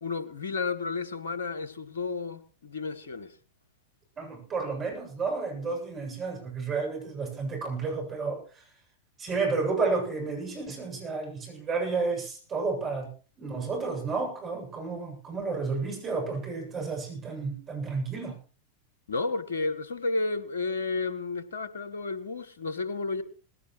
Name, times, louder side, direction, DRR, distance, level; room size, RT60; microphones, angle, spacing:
voice 1, 0.0-3.3 19.1-23.2, left 3 dB, 70° left, 1.4 m, -32 dB
voice 2, 4.2-8.6 9.2-13.1 13.4-18.4, right 4 dB, 25° right, 7.6 m, -31 dB
19.0 x 16.5 x 3.2 m
figure-of-eight pair, 90°, 0 cm